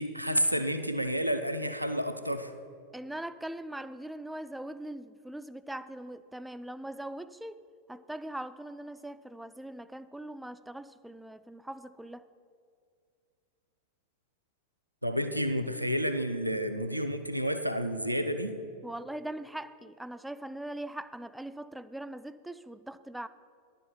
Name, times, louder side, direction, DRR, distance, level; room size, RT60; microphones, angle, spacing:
voice 1, 0.0-2.5 15.0-18.6, equal, 90° right, 8 dB, 0.6 m, -30 dB
voice 2, 2.9-12.3 18.8-23.3, right 1 dB, 5° right, 13 dB, 0.3 m, -41 dB
11.0 x 7.3 x 5.6 m, 2.3 s
figure-of-eight pair, 90°, 0 cm